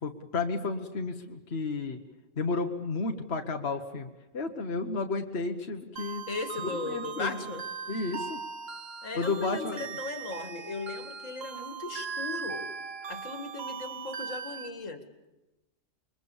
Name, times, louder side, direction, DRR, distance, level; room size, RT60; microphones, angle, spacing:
voice 1, 0.0-2.0 2.4-6.2 6.8-7.4 7.9-8.4 9.1-9.9, left 3 dB, 55° left, 3 dB, 1.6 m, -32 dB
sound 1, 6.0-14.7, right 6 dB, 50° right, 1.4 m, -39 dB
voice 2, 6.3-7.7 9.0-12.7 13.1-15.0, left 4 dB, 75° left, 8 dB, 2.4 m, -37 dB
27.0 x 23.0 x 7.2 m, 1.0 s
omnidirectional pair, 1.3 m